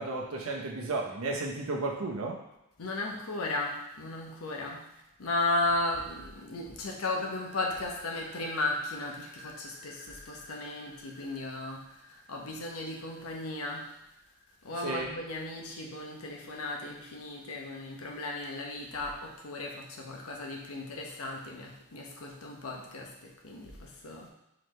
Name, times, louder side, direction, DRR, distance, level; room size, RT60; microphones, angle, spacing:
voice 1, 0.0-2.4 14.8-15.1, right 3 dB, 85° right, 0 dB, 0.7 m, -33 dB
voice 2, 2.8-4.9 5.2-14.0 14.6-24.3, left 2 dB, 85° left, 0 dB, 0.8 m, -35 dB
sound 1, 7.3-14.8, left 1 dB, 10° right, 1.3 m, -51 dB
3.9 x 3.2 x 3.2 m, 0.87 s
head